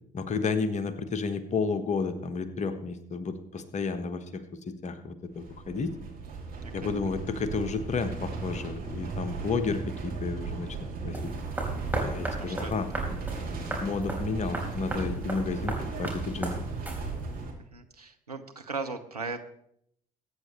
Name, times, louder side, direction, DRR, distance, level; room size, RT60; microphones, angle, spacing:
voice 1, 0.1-4.4 4.8-5.9 6.7-10.7 11.0-11.3 12.0-13.2 13.8-16.5, left 4 dB, 40° left, 10 dB, 1.4 m, -31 dB
sound 1, 5.3-17.5, right 4 dB, 50° right, 3.0 m, -36 dB
voice 2, 6.6-7.0 12.5-13.0 17.7-19.4, right 4 dB, 90° right, 4 dB, 0.7 m, -38 dB
sound 2, 11.1-17.4, right 1 dB, 10° right, 4.1 m, -36 dB
21.5 x 9.0 x 3.2 m, 0.71 s
figure-of-eight pair, 50°, 19 cm